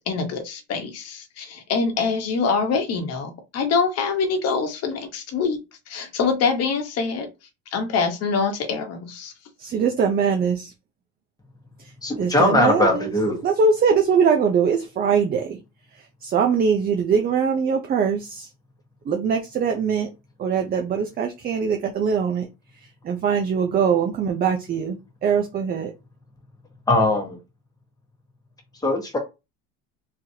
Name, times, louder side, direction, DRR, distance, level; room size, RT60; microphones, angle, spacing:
voice 1, 0.0-5.6 5.9-7.3 7.7-9.3, left 5 dB, 45° left, 1.2 m, -25 dB
voice 2, 9.6-10.7 12.2-13.1 13.4-15.6 16.2-18.5 19.1-20.1 20.4-22.5 23.0-25.9, right 6 dB, 25° right, 0.6 m, -22 dB
voice 3, 12.0-13.5 26.9-27.4 28.7-29.2, left 2 dB, 10° left, 1.2 m, -20 dB
4.0 x 3.0 x 2.8 m
cardioid pair, 135°, 35 cm